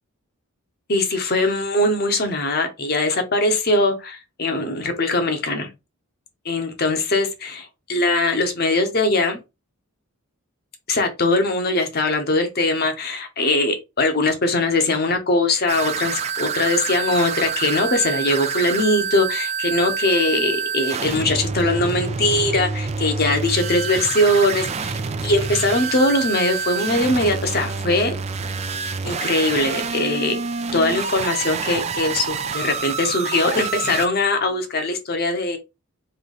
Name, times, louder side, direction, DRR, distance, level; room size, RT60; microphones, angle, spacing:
voice 1, 0.9-5.7 6.4-9.4 10.9-28.1 29.0-30.4 30.7-35.6, left 2 dB, 45° left, 1.0 m, -21 dB
sound 1, 15.7-34.1, right 5 dB, 30° right, 0.3 m, -27 dB
3.4 x 3.0 x 3.9 m
head